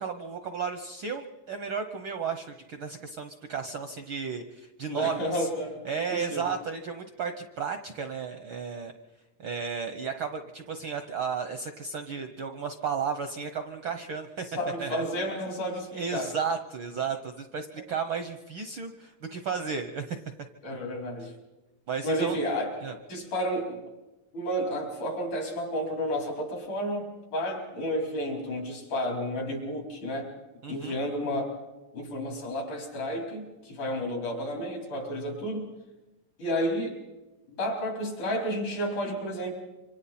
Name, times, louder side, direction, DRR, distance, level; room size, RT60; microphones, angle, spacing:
voice 1, 0.0-5.5 5.8-8.9 9.4-14.4 14.8-15.0 15.9-20.2 21.9-22.4 22.8-22.9 30.6-31.0, right 6 dB, 70° right, 7 dB, 1.2 m, -33 dB
voice 2, 4.9-5.8 6.1-6.4 14.6-16.3 17.8-17.9 20.6-21.3 22.0-22.7 23.1-23.8 24.3-30.3 30.7-31.6 31.9-35.7 36.4-36.9 37.5-39.5, equal, 80° left, 0 dB, 5.9 m, -31 dB
27.0 x 25.0 x 4.3 m, 1.1 s
omnidirectional pair, 3.4 m